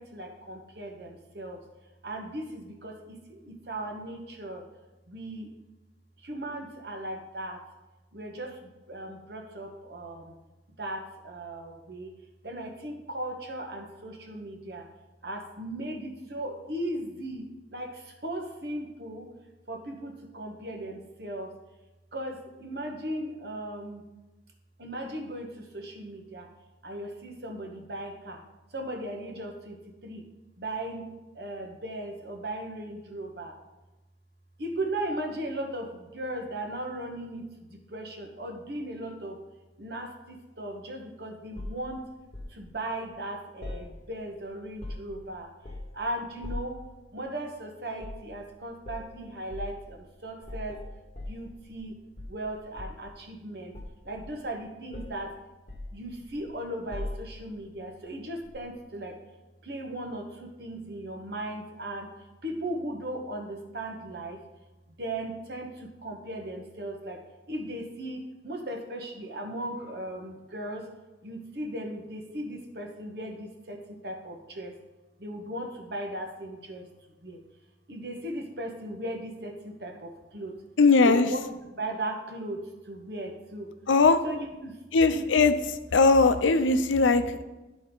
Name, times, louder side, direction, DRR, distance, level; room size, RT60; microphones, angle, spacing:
voice 1, 0.0-1.6 2.0-4.6 5.1-5.5 6.2-7.6 8.1-10.3 10.8-12.1 12.4-14.8 15.2-19.3 19.7-21.5 22.1-24.1 24.8-26.5 26.8-28.4 28.7-29.8 30.0-30.3 30.6-33.5 34.6-39.4 39.8-42.0 42.5-45.5 45.9-46.8 47.1-50.8 51.3-52.0 52.3-53.7 54.0-55.3 55.9-59.2 59.6-62.1 62.4-64.4 65.0-67.2 67.5-70.9 71.2-74.7 75.2-76.8 77.2-77.4 77.9-80.5 81.0-81.4 81.7-83.7 84.2-84.8 85.1-85.4, right 1 dB, 55° right, 2 dB, 1.2 m, -37 dB
sound 1, 41.5-42.6 43.6-44.3 44.6-45.2 45.6-46.0 46.4-46.8 48.0-48.3 48.8-49.1 49.5-49.8 50.4-51.9 52.2-53.1 53.7-54.6 54.9-55.2 55.7-56.5 56.9-57.5 58.5-58.6, left 1 dB, 30° left, 1.3 m, -40 dB
voice 2, 80.8-81.3 83.9-84.2 84.9-85.5 85.9-87.4, left 4 dB, 90° left, 10 dB, 0.6 m, -20 dB
12.5 x 4.2 x 4.0 m, 1.1 s
head